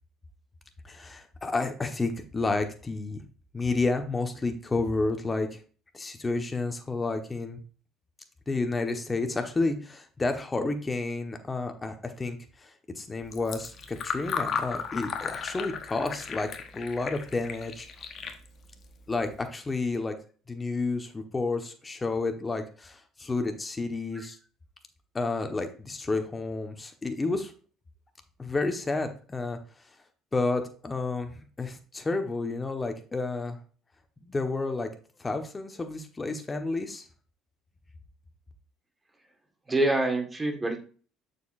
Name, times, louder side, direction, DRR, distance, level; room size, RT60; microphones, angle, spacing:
voice 1, 0.8-3.2 3.5-5.6 5.9-7.6 8.5-12.7 12.9-16.5 16.7-17.9 19.1-20.1 20.5-24.4 25.1-27.5 28.4-29.6 30.3-33.6 34.2-34.9 35.2-37.0, left 3 dB, 25° left, 6 dB, 1.3 m, -30 dB
Fill (with liquid), 13.2-19.4, left 6 dB, 45° left, 1.1 m, -36 dB
voice 2, 39.7-40.8, right 2 dB, 20° right, 4 dB, 1.7 m, -26 dB
6.8 x 6.7 x 2.6 m, 0.40 s
hypercardioid pair, 65°, 0 cm